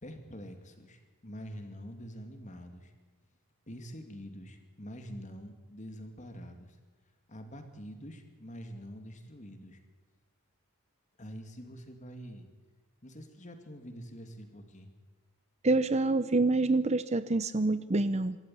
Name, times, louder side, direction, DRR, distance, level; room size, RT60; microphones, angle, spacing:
voice 1, 0.0-2.9 3.7-6.8 7.3-9.8 11.2-12.5 13.0-14.9, equal, 35° left, 6 dB, 2.6 m, -46 dB
voice 2, 15.6-18.4, right 2 dB, 30° right, 14 dB, 0.6 m, -27 dB
25.0 x 14.0 x 9.2 m, 1.3 s
head